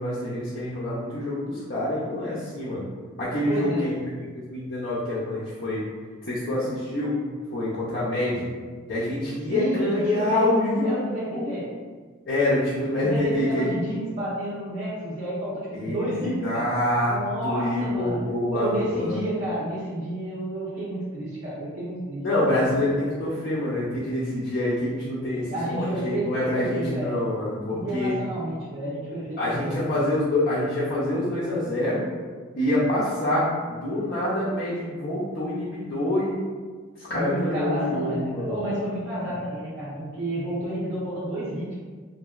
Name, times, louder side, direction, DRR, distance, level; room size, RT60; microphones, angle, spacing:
voice 1, 0.0-2.8 3.2-4.0 4.5-5.8 6.2-7.2 7.5-8.5 8.9-10.9 11.3-11.5 12.3-13.8 15.7-16.1 16.4-17.2 17.4-19.1 22.2-28.1 29.4-32.0 32.5-36.4 37.0-38.6, left 1 dB, 50° left, -9 dB, 0.5 m, -26 dB
voice 2, 3.4-3.9 9.5-10.5 10.8-11.7 13.0-16.7 17.1-18.2 18.5-22.2 25.5-27.2 27.7-30.1 37.1-41.8, right 1 dB, 65° right, -11 dB, 0.8 m, -30 dB
2.9 x 2.5 x 2.3 m, 1.5 s
head